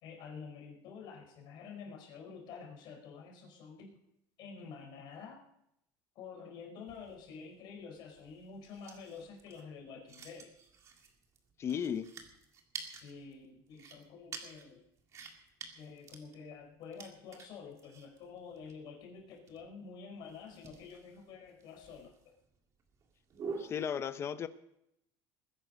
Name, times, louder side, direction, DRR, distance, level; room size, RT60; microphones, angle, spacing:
voice 1, 0.0-4.0 4.4-5.4 6.1-10.6 12.9-14.8 15.7-22.1, left 5 dB, 50° left, 1 dB, 4.7 m, -49 dB
sound 1, 6.9-23.9, right 5 dB, 35° right, 2.1 m, -49 dB
voice 2, 11.6-12.1 23.6-24.5, left 8 dB, 30° left, 12 dB, 0.8 m, -35 dB
20.5 x 10.5 x 5.2 m, 0.79 s
cardioid pair, 170°, 10 cm